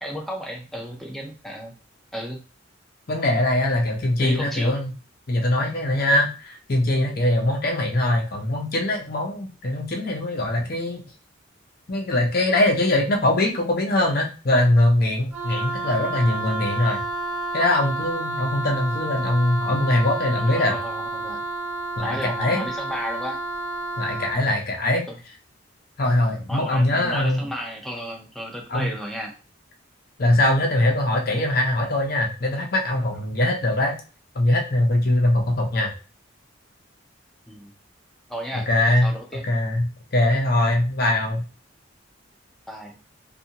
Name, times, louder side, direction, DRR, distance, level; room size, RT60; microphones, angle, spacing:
voice 1, 0.0-1.7 2.1-2.4 4.2-4.7 20.5-21.4 22.0-23.4 25.1-25.2 26.5-29.3 37.5-37.7 38.3-38.7 39.0-39.4 42.7-43.0, equal, ahead, 0 dB, 0.5 m, -33 dB
voice 2, 3.1-4.9 5.3-11.0 11.9-17.1 17.5-20.7 22.0-22.6 24.0-25.0 26.0-27.5 28.7-28.9 30.2-33.9 34.3-35.9 38.5-39.1 39.5-41.4, left 1 dB, 50° left, 1 dB, 0.6 m, -22 dB
Wind instrument woodwind instrument, 15.3-24.4, right 2 dB, 80° right, 0.9 m, -30 dB
2.7 x 2.3 x 2.7 m, 0.34 s
head